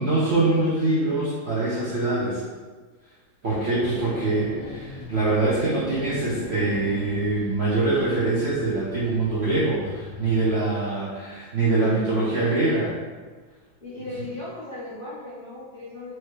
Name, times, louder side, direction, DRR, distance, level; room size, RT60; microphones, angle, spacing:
voice 1, 0.0-2.4 3.4-12.9, right 2 dB, 55° right, -8 dB, 0.7 m, -24 dB
sound 1, 3.5-10.5, left 3 dB, 75° left, 1.3 m, -39 dB
voice 2, 13.8-16.1, left 2 dB, 45° left, -9 dB, 0.8 m, -37 dB
4.6 x 3.1 x 3.1 m, 1.4 s
omnidirectional pair, 2.3 m